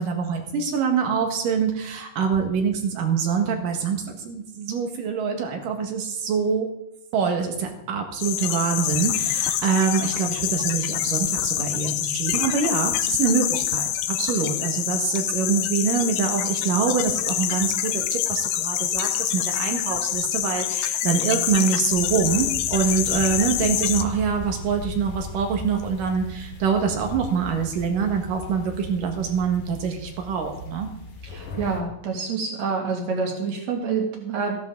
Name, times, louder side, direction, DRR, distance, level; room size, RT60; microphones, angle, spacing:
voice 1, 0.0-6.7 7.1-30.9, right 6 dB, 75° right, 4 dB, 3.3 m, -25 dB
sound 1, 8.2-24.0, left 12 dB, 85° left, 2.4 m, -26 dB
sound 2, 21.9-31.8, left 3 dB, 65° left, 3.6 m, -38 dB
voice 2, 31.2-34.6, right 5 dB, 55° right, 1 dB, 3.4 m, -27 dB
15.5 x 11.0 x 3.9 m, 0.81 s
omnidirectional pair, 3.9 m